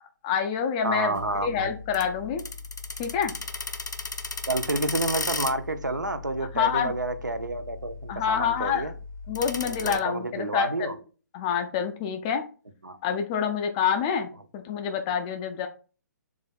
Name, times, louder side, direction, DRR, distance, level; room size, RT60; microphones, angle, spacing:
voice 1, 0.0-2.4 3.0-3.3 6.5-6.9 8.1-8.9 9.3-10.7 11.3-12.4 13.0-15.7, left 7 dB, 20° left, 0.3 m, -27 dB
voice 2, 0.8-1.7 4.5-8.9 9.6-11.0 12.8-13.0, right 2 dB, 75° right, 0.6 m, -29 dB
sound 1, 1.2-10.0, left 3 dB, 75° left, 0.5 m, -36 dB
3.3 x 2.5 x 4.0 m
figure-of-eight pair, 135°, 10 cm